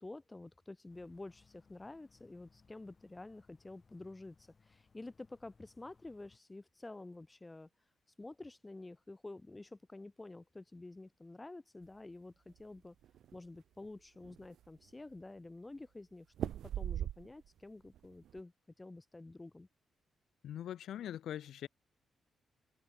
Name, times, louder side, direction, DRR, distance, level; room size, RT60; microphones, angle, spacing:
voice 1, 0.0-7.7 8.2-12.9 13.3-18.5 18.8-19.7, left 2 dB, 15° left, 1.6 m, -50 dB
sound 1, 0.9-6.4, left 5 dB, 30° left, 2.6 m, -68 dB
sound 2, 12.5-13.4 13.9-14.0 14.2-14.9 16.3-17.6 17.9-18.4, right 11 dB, 75° right, 0.4 m, -40 dB
voice 2, 20.4-21.7, left 11 dB, 75° left, 0.6 m, -42 dB
cardioid pair, 130°, 0 cm